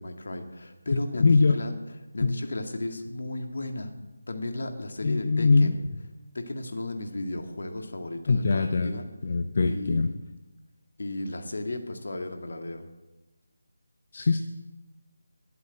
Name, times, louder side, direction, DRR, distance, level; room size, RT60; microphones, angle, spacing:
voice 1, 0.0-1.7 2.1-3.9 4.3-5.8 6.3-9.1 9.7-10.2 11.0-12.8, left 2 dB, 65° left, 5 dB, 1.8 m, -34 dB
voice 2, 0.9-1.5 2.2-2.3 5.0-5.8 8.3-8.9 9.2-10.1 14.1-14.4, left 4 dB, 45° left, 7 dB, 0.7 m, -22 dB
11.0 x 8.1 x 8.7 m, 1.0 s
figure-of-eight pair, 160°, 0 cm